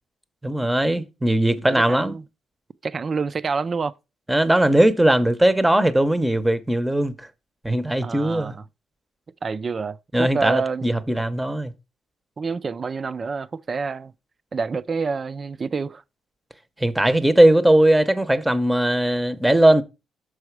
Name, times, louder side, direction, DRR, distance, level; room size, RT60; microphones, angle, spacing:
voice 1, 0.4-2.2 4.3-7.3 7.6-8.5 10.1-11.7 16.8-19.8, right 1 dB, 10° right, 0.8 m, -19 dB
voice 2, 1.5-2.2 2.8-3.9 8.0-8.6 9.4-11.0 12.4-14.1 14.5-16.0, right 5 dB, 40° right, 0.4 m, -28 dB
6.2 x 4.9 x 4.6 m
cardioid pair, 90°, 0 cm